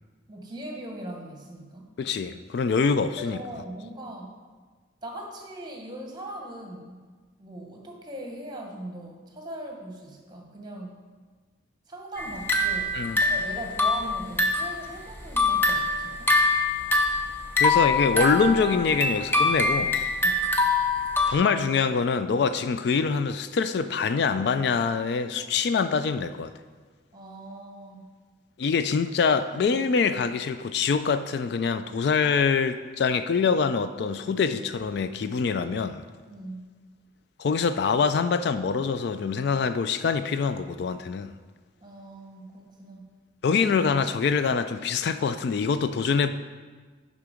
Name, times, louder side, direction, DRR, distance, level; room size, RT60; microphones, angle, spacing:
voice 1, 0.3-1.9 3.2-4.3 5.0-7.0 7.4-11.0 11.9-16.3 20.2-20.5 27.1-28.1 36.3-36.7 41.8-43.1, right 1 dB, 25° right, 1 dB, 1.1 m, -40 dB
voice 2, 2.0-3.4 12.9-13.2 17.6-20.0 21.3-26.5 28.6-36.0 37.4-41.3 43.4-46.3, left 5 dB, 60° left, 11 dB, 0.3 m, -24 dB
sound 1, 12.2-14.8 15.2-21.3, left 2 dB, 10° left, 0.6 m, -24 dB
10.5 x 3.7 x 5.0 m, 1.4 s
head